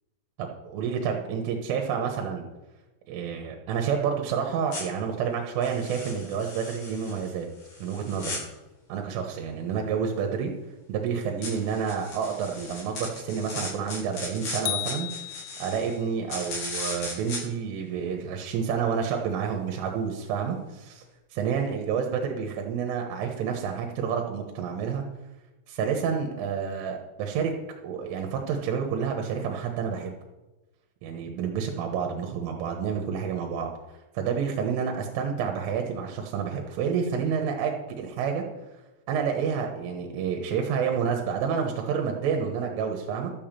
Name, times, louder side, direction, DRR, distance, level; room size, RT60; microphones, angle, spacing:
voice 1, 0.4-2.5 3.1-7.5 7.8-8.4 8.9-10.5 10.9-15.1 15.6-21.0 21.3-25.0 25.7-27.5 27.8-30.1 31.0-33.7 34.2-38.5 39.1-43.3, right 7 dB, 85° right, 3 dB, 3.8 m, -29 dB
sound 1, 4.7-4.8 5.6-8.4 11.4-16.0 16.3-17.4, left 3 dB, 55° left, 7.6 m, -37 dB
sound 2, 14.7-16.0, left 16 dB, 75° left, 2.6 m, -34 dB
13.0 x 7.2 x 7.5 m, 1.1 s
omnidirectional pair, 5.7 m